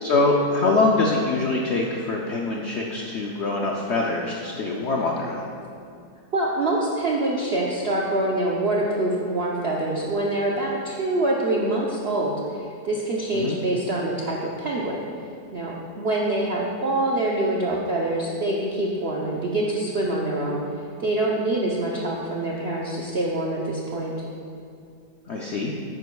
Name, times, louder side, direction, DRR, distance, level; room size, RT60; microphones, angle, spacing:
voice 1, 0.0-5.5 13.3-13.6 25.3-25.7, left 3 dB, 60° left, -1 dB, 0.7 m, -24 dB
voice 2, 6.3-15.0 15.5-20.6 21.0-24.1, right 2 dB, 55° right, -3 dB, 0.7 m, -25 dB
9.7 x 9.4 x 2.3 m, 2.4 s
omnidirectional pair, 1.8 m